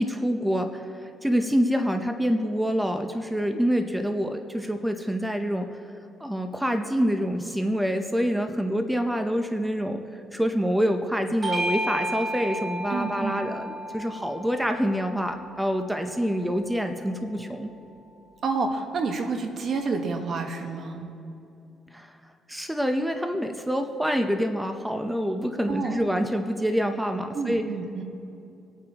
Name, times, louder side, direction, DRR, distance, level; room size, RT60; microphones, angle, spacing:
voice 1, 0.0-5.7 6.2-10.0 10.3-17.7 21.9-22.1 22.5-27.7, equal, 5° right, 6 dB, 0.8 m, -26 dB
Bell / Doorbell, 11.4-16.3, right 1 dB, 30° right, 1.3 m, -33 dB
voice 2, 12.9-13.5 18.4-21.1 25.7-26.0 27.3-28.0, right 4 dB, 60° right, 4 dB, 1.4 m, -29 dB
26.0 x 8.8 x 3.0 m, 2.8 s
cardioid pair, 90°, 0 cm